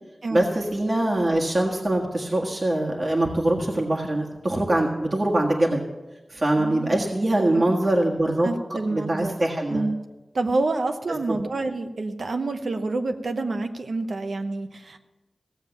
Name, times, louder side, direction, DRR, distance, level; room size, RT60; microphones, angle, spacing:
voice 1, 0.3-5.8 6.3-8.5 8.9-9.9, right 1 dB, 40° right, -1 dB, 1.6 m, -23 dB
voice 2, 6.6-7.1 7.5-7.6 8.4-9.4 9.7-10.0 10.3-15.0, right 3 dB, 70° right, 7 dB, 0.9 m, -28 dB
16.0 x 7.3 x 7.0 m, 1.1 s
wide cardioid pair, 75°, 0 cm